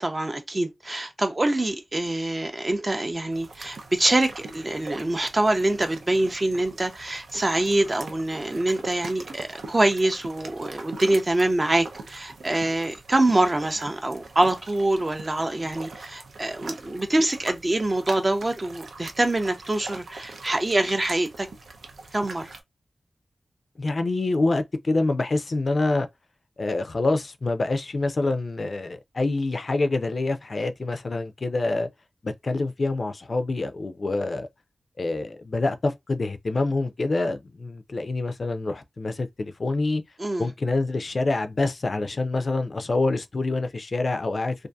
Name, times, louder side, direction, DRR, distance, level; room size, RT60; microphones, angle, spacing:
voice 1, 0.0-21.5 22.1-22.6 40.2-40.5, right 2 dB, 30° right, 0.5 m, -25 dB
sound 1, 3.3-22.6, right 3 dB, 90° right, 0.5 m, -42 dB
voice 2, 23.8-26.1 26.6-31.9 32.2-34.5 35.0-40.0 40.4-44.5, left 2 dB, 55° left, 0.3 m, -26 dB
2.6 x 2.4 x 2.2 m
wide cardioid pair, 80°, 0 cm